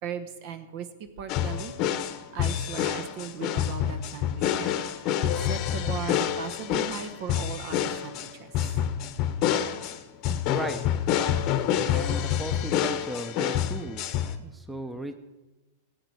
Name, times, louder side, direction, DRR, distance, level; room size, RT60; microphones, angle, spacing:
voice 1, 0.0-0.9 1.2-1.7 2.3-8.5 10.2-10.4, right 7 dB, 55° right, 10 dB, 1.1 m, -38 dB
sound 1, 1.3-14.4, left 10 dB, 45° left, 0.9 m, -27 dB
voice 2, 10.5-10.8 11.9-14.0 14.4-15.2, right 1 dB, 5° right, 9 dB, 0.8 m, -36 dB
16.5 x 8.2 x 4.8 m, 1.1 s
hypercardioid pair, 110°, 0 cm